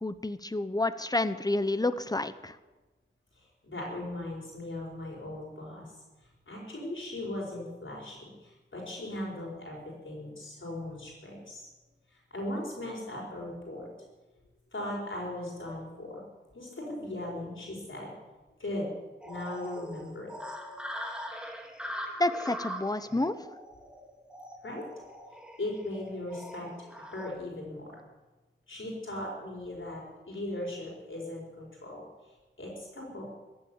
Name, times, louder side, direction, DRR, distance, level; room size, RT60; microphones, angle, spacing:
voice 1, 0.0-2.6 22.2-23.4, left 2 dB, 20° left, 13 dB, 0.8 m, -29 dB
voice 2, 3.6-5.9 6.5-11.6 12.3-13.9 14.7-16.2 16.5-18.1 18.6-18.9 19.2-20.3 24.6-24.8 25.6-27.9 28.7-32.0 32.6-33.2, left 1 dB, 70° left, -3 dB, 4.9 m, -38 dB
sound 1, 19.2-27.3, equal, 5° right, 2.2 m, -42 dB
15.0 x 8.9 x 9.3 m, 1.2 s
wide cardioid pair, 75°, 21 cm